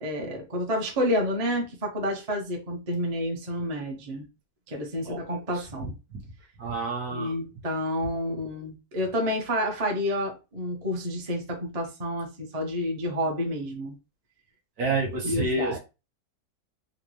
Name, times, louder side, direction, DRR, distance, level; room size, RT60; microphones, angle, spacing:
voice 1, 0.0-4.3 4.7-5.9 7.1-13.9 15.2-15.8, equal, 35° right, 0.6 m, -29 dB
voice 2, 6.6-7.3 14.8-15.8, right 2 dB, 60° right, 1.5 m, -28 dB
3.9 x 2.1 x 3.0 m
omnidirectional pair, 1.8 m